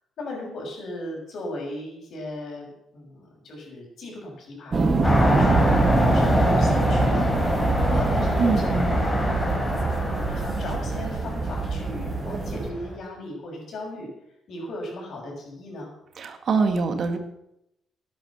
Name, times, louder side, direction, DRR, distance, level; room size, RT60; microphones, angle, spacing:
voice 1, 0.2-14.1 14.5-15.9, left 1 dB, 65° left, 0 dB, 6.2 m, -37 dB
sound 1, 4.7-12.7, right 3 dB, 35° right, 1.8 m, -25 dB
sound 2, 5.0-13.0, left 1 dB, 20° left, 3.7 m, -25 dB
voice 2, 8.4-9.0 16.2-17.2, right 4 dB, 55° right, 7 dB, 1.9 m, -24 dB
12.0 x 9.8 x 7.2 m, 0.82 s
cardioid pair, 90°, 0 cm